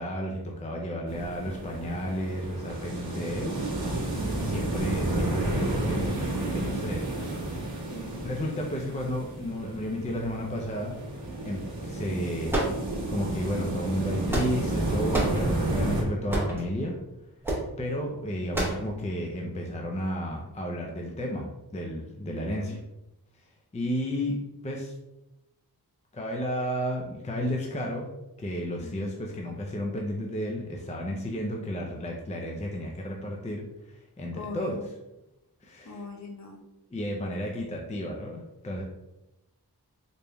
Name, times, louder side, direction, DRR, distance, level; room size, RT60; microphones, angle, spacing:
voice 1, 0.0-3.9 4.4-7.3 8.2-11.0 11.4-12.6 13.1-17.0 17.8-22.8 23.3-24.4 24.6-25.0 26.1-28.1 28.4-34.9 35.6-36.1 36.9-38.8, equal, 20° left, 0 dB, 0.4 m, -32 dB
sound 1, 1.1-16.0, right 2 dB, 55° right, 1.2 m, -31 dB
voice 2, 4.1-4.7 7.9-8.2 22.3-22.8 28.8-28.9 34.3-34.8 35.8-36.6, left 2 dB, 45° left, 0 dB, 0.8 m, -41 dB
sound 2, 12.5-13.3 14.0-14.7 15.1-15.4 16.3-16.6 17.4-17.7 18.5-18.9, right 1 dB, 5° right, 1.0 m, -28 dB
3.9 x 3.4 x 2.2 m, 0.94 s
wide cardioid pair, 90°, 39 cm